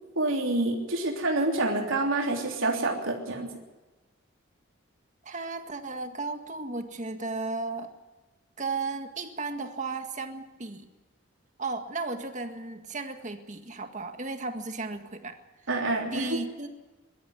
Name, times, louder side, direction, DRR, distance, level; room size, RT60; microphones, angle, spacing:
voice 1, 0.1-3.5 15.7-16.4, right 2 dB, 70° right, 0 dB, 3.3 m, -27 dB
voice 2, 5.2-7.9 8.6-10.9 11.6-15.3 16.1-16.7, right 3 dB, 35° right, 6 dB, 1.8 m, -34 dB
22.5 x 13.0 x 9.6 m, 1.2 s
head